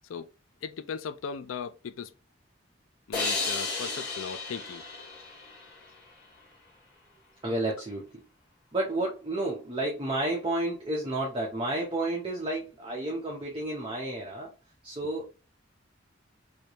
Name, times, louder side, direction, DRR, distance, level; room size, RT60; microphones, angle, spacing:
voice 1, 0.6-2.1 3.1-4.8, left 6 dB, 90° left, 0.4 m, -37 dB
sound 1, 3.1-6.4, left 3 dB, 50° left, 1.1 m, -34 dB
voice 2, 7.4-8.1 8.7-14.5 14.8-15.3, right 1 dB, 25° right, 0.7 m, -31 dB
3.3 x 2.7 x 2.9 m
head